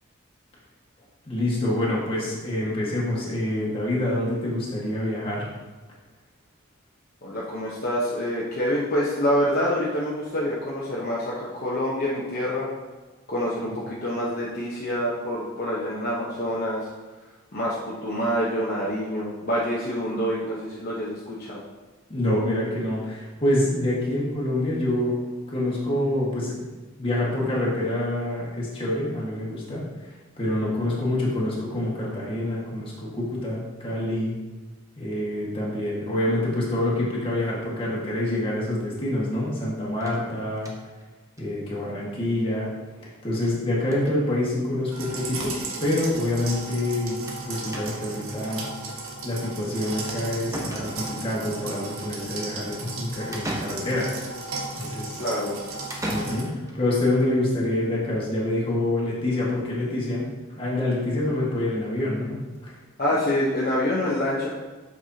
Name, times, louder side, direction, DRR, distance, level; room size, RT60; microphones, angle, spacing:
voice 1, 1.2-5.5 13.7-13.8 22.1-25.2 25.5-26.6 27.0-30.1 30.4-34.4 35.0-40.7 41.4-42.7 43.2-45.5 45.8-48.6 49.2-54.1 54.7-55.2 56.1-60.3 60.5-62.4 62.6-62.7, left 1 dB, 25° left, -5 dB, 1.7 m, -26 dB
voice 2, 7.2-12.7 13.3-16.9 17.5-21.6 55.2-55.5 63.0-64.5, equal, 45° left, -6 dB, 0.9 m, -26 dB
sound 1, 40.0-41.0 41.4-41.5 41.8-41.9 42.1-42.2 43.3-43.6 43.8-44.2 45.1-45.2 45.4-45.5 47.3-47.5 47.7-48.2 50.0-50.1 50.5-51.3 53.3-54.2 55.9-56.8, right 1 dB, 15° right, 0.8 m, -36 dB
sound 2, 44.9-56.4, right 3 dB, 85° right, 1.2 m, -35 dB
7.9 x 5.4 x 2.8 m, 1.3 s
head